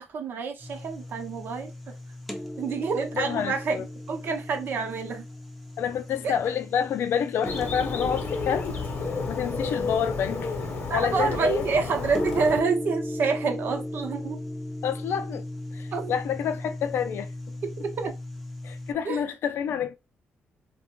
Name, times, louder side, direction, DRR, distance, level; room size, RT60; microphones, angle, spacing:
voice 1, 0.0-2.0 2.6-3.7 4.1-5.2 6.2-6.3 10.9-14.4 15.9-16.1 17.8-18.1 19.0-19.2, right 5 dB, 55° right, 0.7 m, -28 dB
sound 1, 0.6-18.9, left 1 dB, ahead, 0.5 m, -37 dB
voice 2, 3.2-3.9 5.8-8.8 9.3-10.5 10.9-11.6 14.8-15.4 15.7-17.3 18.6-20.0, left 8 dB, 65° left, 0.4 m, -28 dB
Bird, 7.4-12.6, left 4 dB, 45° left, 0.8 m, -31 dB
2.4 x 2.1 x 3.0 m
cardioid pair, 145°, 4 cm